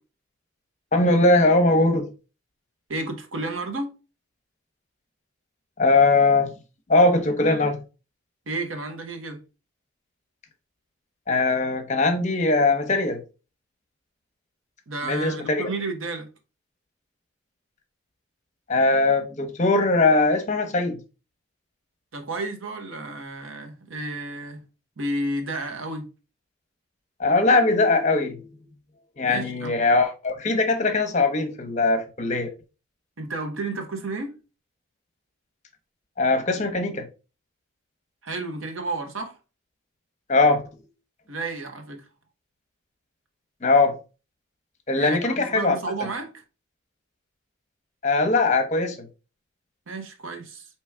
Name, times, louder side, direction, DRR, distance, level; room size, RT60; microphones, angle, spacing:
voice 1, 0.9-2.1 5.8-6.5 6.9-7.8 11.3-13.2 15.1-15.7 18.7-21.0 27.2-28.5 29.2-32.5 36.2-37.0 40.3-40.8 43.6-43.9 44.9-45.8 48.0-49.0, left 3 dB, 35° left, 0.7 m, -20 dB
voice 2, 2.9-3.9 8.5-9.4 14.9-16.3 22.1-24.6 25.0-26.1 29.3-29.8 33.2-34.3 38.2-39.3 41.3-42.0 45.0-46.4 49.9-50.7, right 2 dB, 85° right, 1.0 m, -32 dB
4.6 x 3.0 x 3.4 m
head